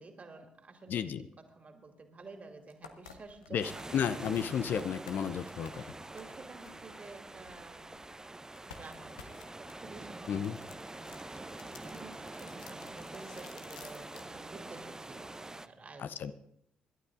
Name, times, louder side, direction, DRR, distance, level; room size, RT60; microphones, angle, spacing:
voice 1, 0.0-1.0 1.4-3.8 5.6-8.0 8.7-10.4 10.8-16.1, right 3 dB, 40° right, 4 dB, 2.5 m, -51 dB
voice 2, 0.9-1.3 3.5-5.8 10.3-10.6 16.0-16.3, left 8 dB, 55° left, 12 dB, 0.6 m, -33 dB
sound 1, 2.2-2.3 2.7-8.1 8.5-14.3, left 6 dB, 85° left, 0.8 m, -55 dB
sound 2, 3.6-15.7, right 2 dB, 15° right, 0.7 m, -45 dB
25.5 x 12.0 x 2.6 m, 0.74 s
figure-of-eight pair, 40°, 4 cm